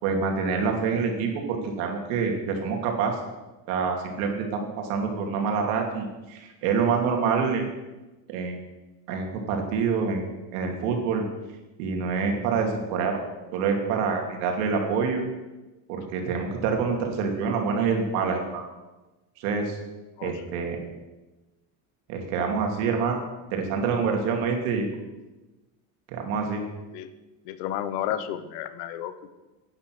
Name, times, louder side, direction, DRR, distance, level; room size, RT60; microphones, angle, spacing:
voice 1, 0.0-3.2 3.7-7.7 8.3-8.6 9.1-10.2 10.5-11.3 11.8-13.2 13.5-15.2 15.9-18.6 19.4-19.8 20.2-20.8 22.1-23.2 23.5-24.8 26.1-26.6, right 5 dB, 85° right, 2 dB, 2.8 m, -26 dB
voice 2, 27.4-29.3, left 11 dB, 85° left, 12 dB, 1.2 m, -32 dB
11.5 x 9.4 x 6.2 m, 1.1 s
cardioid pair, 175°, 39 cm